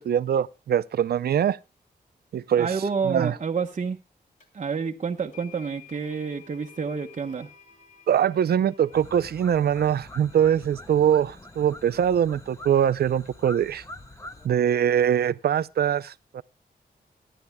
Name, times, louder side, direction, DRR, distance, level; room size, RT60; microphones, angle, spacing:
voice 1, 0.0-1.6 2.3-2.7 3.1-3.3 8.1-13.8 14.4-16.4, right 9 dB, 75° right, 0.5 m, -23 dB
voice 2, 2.6-4.0 4.5-7.5, right 5 dB, 45° right, 1.0 m, -29 dB
sound 1, 4.4-4.5 5.3-13.4, left 7 dB, 50° left, 2.9 m, -54 dB
sound 2, 8.9-14.5, left 1 dB, 20° left, 1.4 m, -44 dB
23.5 x 11.5 x 2.2 m
wide cardioid pair, 100°, 16 cm